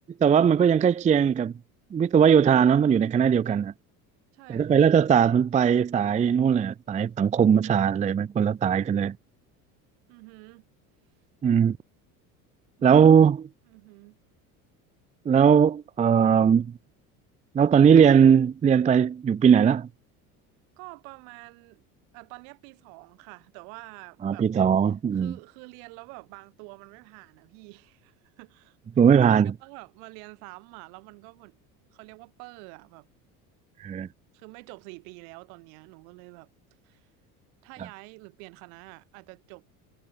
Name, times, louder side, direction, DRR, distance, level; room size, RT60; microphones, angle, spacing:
voice 1, 0.2-1.5 1.9-3.7 4.5-9.2 11.4-11.8 12.8-13.5 15.3-16.7 17.5-19.9 24.2-25.3 29.0-29.5 33.8-34.1, right 7 dB, 15° right, 0.4 m, -19 dB
voice 2, 4.3-4.9 10.1-10.7 13.7-14.2 20.8-21.8 22.1-24.5 25.1-31.6 31.9-33.1 34.3-36.5 36.8-37.1 37.6-39.6, right 40 dB or more, 70° right, 4.4 m, -47 dB
hypercardioid pair, 75°, 44 cm